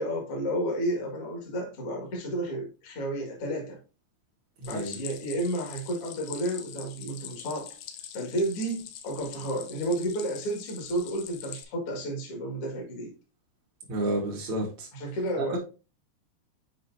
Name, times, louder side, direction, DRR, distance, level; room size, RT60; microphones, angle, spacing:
voice 1, 0.0-3.8 4.7-7.7 8.1-13.1 14.9-15.6, right 1 dB, 45° left, 0 dB, 1.9 m, -31 dB
Stream, 4.6-11.6, left 10 dB, 80° left, 2.3 m, -44 dB
voice 2, 4.6-4.9 13.9-14.9 15.3-15.6, right 1 dB, 65° right, -2 dB, 1.3 m, -30 dB
7.9 x 4.8 x 2.7 m, 0.32 s
omnidirectional pair, 5.4 m